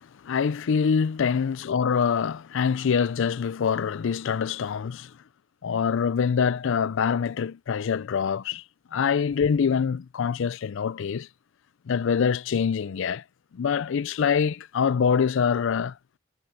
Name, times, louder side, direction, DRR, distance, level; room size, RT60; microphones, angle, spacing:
voice 1, 0.2-5.1 5.6-8.6 8.9-11.3 11.9-13.2 13.5-15.9, left 6 dB, 65° left, 0.4 m, -25 dB
head